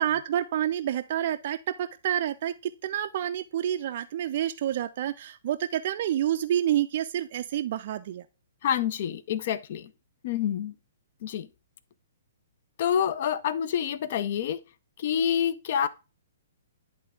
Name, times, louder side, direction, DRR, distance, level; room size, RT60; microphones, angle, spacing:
voice 1, 0.0-8.2, right 11 dB, 45° right, 0.3 m, -28 dB
voice 2, 8.6-9.9 10.2-10.7 11.2-11.5 12.8-14.6 15.0-15.9, left 9 dB, 45° left, 0.5 m, -27 dB
10.5 x 3.7 x 3.5 m
figure-of-eight pair, 120°, 0 cm